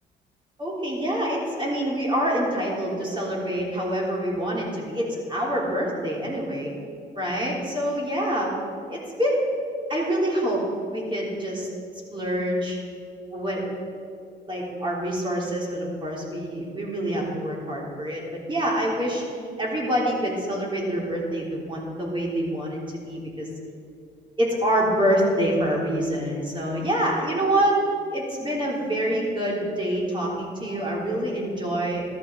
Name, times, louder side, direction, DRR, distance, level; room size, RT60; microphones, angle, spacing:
voice 1, 0.6-6.7 7.2-8.5 8.9-9.5 9.9-10.6 10.9-11.7 12.1-12.8 13.3-13.8 14.5-19.2 19.6-23.5 24.4-27.8 28.1-32.1, equal, 25° right, -3 dB, 3.5 m, -26 dB
13.5 x 12.5 x 4.6 m, 2.4 s
cardioid pair, 90°, 20 cm